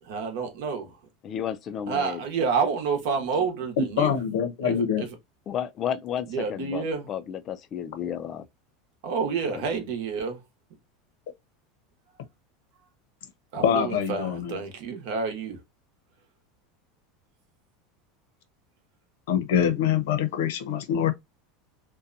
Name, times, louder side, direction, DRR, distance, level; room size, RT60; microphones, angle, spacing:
voice 1, 0.0-1.0 1.9-4.1 4.6-5.1 6.3-7.1 9.0-10.4 13.5-15.6, right 5 dB, 65° right, 0.9 m, -29 dB
voice 2, 1.2-2.2 5.5-8.4 9.5-9.6, left 9 dB, 30° left, 0.3 m, -32 dB
voice 3, 3.8-5.0 13.6-14.6 19.3-21.1, left 8 dB, 80° left, 0.7 m, -24 dB
2.7 x 2.2 x 2.5 m
supercardioid pair, 150°, 0 cm